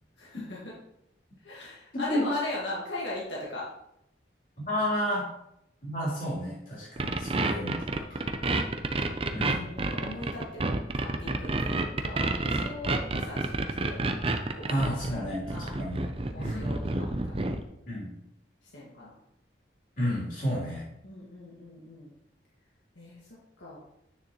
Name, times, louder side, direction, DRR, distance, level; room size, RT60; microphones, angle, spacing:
voice 1, 0.2-0.7 1.4-3.7 8.9-9.3 9.5-10.6 10.9-14.0 14.5-15.8 16.3-17.5 18.7-19.1 21.0-22.1 23.0-23.8, left 2 dB, 85° left, -5 dB, 1.9 m, -39 dB
voice 2, 1.9-2.3 4.6-5.3 5.8-8.2 9.3-9.7 14.7-16.0 16.4-16.7 17.9-18.1 20.0-20.9, equal, 45° left, -7 dB, 3.4 m, -31 dB
sound 1, 7.0-17.6, right 2 dB, 30° right, 0.5 m, -29 dB
9.3 x 6.6 x 3.0 m, 0.80 s
head